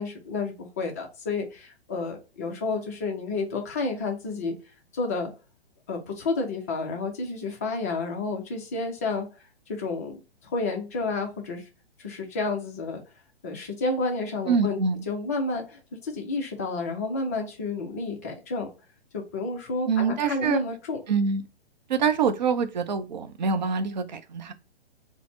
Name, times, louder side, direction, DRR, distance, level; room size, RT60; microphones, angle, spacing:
voice 1, 0.0-4.5 4.9-5.3 5.9-9.3 9.7-11.6 12.0-13.0 13.4-14.8 15.1-18.7 19.1-21.0, left 3 dB, 15° left, 0.4 m, -30 dB
voice 2, 14.5-15.0 19.9-20.6 21.1-21.4 21.9-24.5, right 5 dB, 45° right, 0.5 m, -25 dB
4.0 x 2.0 x 2.7 m
figure-of-eight pair, 120°, 31 cm